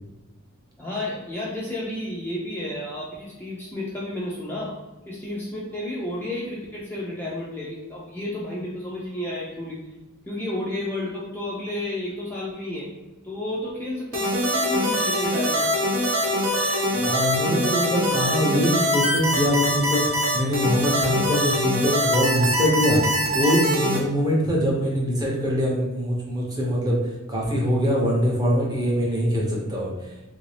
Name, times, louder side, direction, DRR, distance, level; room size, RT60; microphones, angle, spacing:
voice 1, 0.8-4.7 5.1-9.8 10.3-12.9 13.2-15.7, left 1 dB, 10° left, -6 dB, 0.4 m, -31 dB
sound 1, 14.1-24.0, equal, 65° right, 0.9 m, -23 dB
voice 2, 16.9-20.1 20.3-23.0 23.3-27.0 27.3-29.9, equal, 20° right, -3 dB, 0.7 m, -23 dB
3.3 x 2.6 x 3.2 m, 1.1 s
head